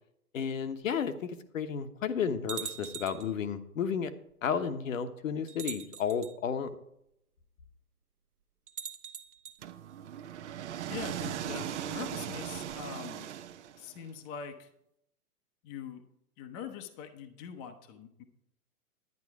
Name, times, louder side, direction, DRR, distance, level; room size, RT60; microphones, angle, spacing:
voice 1, 0.3-4.1 4.4-6.7, left 7 dB, 55° left, 9 dB, 1.1 m, -32 dB
sound 1, 0.8-0.9 1.7-1.8 2.5-3.3 4.5-4.6 5.5-6.3 8.7-9.6, right 8 dB, 75° right, 1.2 m, -42 dB
sound 2, 9.6-14.0, right 10 dB, 50° right, 0.9 m, -38 dB
voice 2, 10.9-13.3 13.8-14.7 15.6-16.0 16.4-18.2, left 7 dB, 20° left, 5 dB, 0.8 m, -43 dB
11.0 x 9.6 x 4.7 m, 0.77 s
hypercardioid pair, 130°, 46 cm